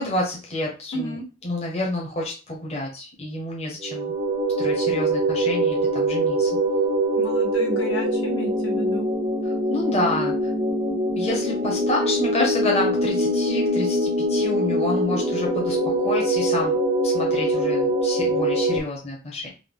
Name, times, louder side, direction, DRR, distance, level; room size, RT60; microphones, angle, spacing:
voice 1, 0.0-1.2 1.4-4.1 4.6-6.5 9.4-10.5 11.1-16.8 17.0-19.5, left 1 dB, 30° left, -2 dB, 0.9 m, -29 dB
voice 2, 0.9-1.3 7.2-9.0, equal, 70° left, -2 dB, 1.2 m, -32 dB
sound 1, 3.8-18.8, right 1 dB, 30° right, 0.6 m, -23 dB
3.9 x 2.2 x 3.5 m, 0.31 s
head